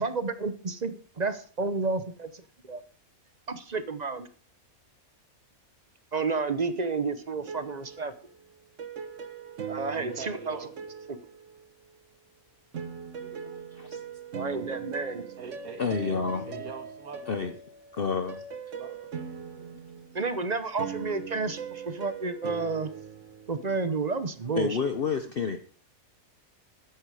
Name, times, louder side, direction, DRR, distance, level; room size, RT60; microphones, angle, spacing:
voice 1, 0.0-2.3 2.7-2.8 3.5-4.3 6.1-8.1 9.7-10.6 14.3-15.2 20.1-22.9 23.5-24.8, right 4 dB, 35° right, 12 dB, 0.8 m, -30 dB
sound 1, 7.4-12.1 12.7-24.0, right 7 dB, 60° right, 1.4 m, -41 dB
voice 2, 9.9-10.7 15.4-16.1 16.5-17.4 17.9-18.3 18.7-19.1, right 5 dB, 85° right, 7 dB, 1.9 m, -43 dB
voice 3, 15.8-16.6 17.3-17.5 17.9-18.4 24.6-25.6, left 5 dB, 45° left, 8 dB, 0.9 m, -29 dB
13.5 x 10.5 x 4.8 m, 0.42 s
omnidirectional pair, 1.5 m